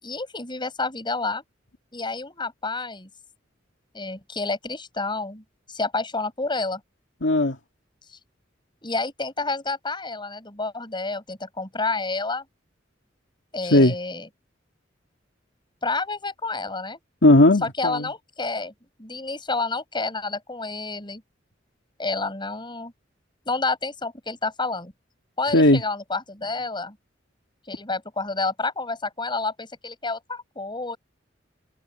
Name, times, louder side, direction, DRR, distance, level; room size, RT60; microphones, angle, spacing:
voice 1, 0.0-1.4 1.9-3.1 3.9-6.8 8.1-8.2 8.8-12.4 13.5-14.3 15.8-17.0 17.6-18.7 19.0-21.2 22.0-22.9 23.5-24.9 25.4-27.0 27.7-31.0, left 3 dB, 25° left, 7.6 m, -29 dB
voice 2, 7.2-7.6 13.7-13.9 17.2-18.1 25.5-25.8, left 1 dB, 75° left, 2.3 m, -16 dB
open air
head